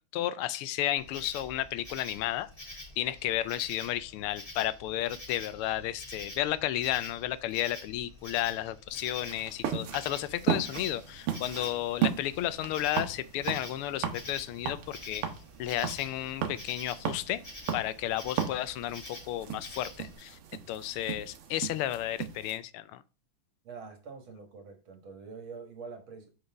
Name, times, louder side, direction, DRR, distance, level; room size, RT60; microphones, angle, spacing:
voice 1, 0.1-15.2 15.6-17.4 17.7-20.4 20.7-23.0, left 13 dB, 80° left, 1.5 m, -33 dB
Insect, 1.0-20.2, left 1 dB, 20° left, 1.5 m, -47 dB
sound 1, 8.9-22.6, right 9 dB, 80° right, 1.9 m, -36 dB
voice 2, 23.6-26.3, right 5 dB, 65° right, 2.2 m, -45 dB
6.7 x 5.6 x 3.4 m
omnidirectional pair, 2.4 m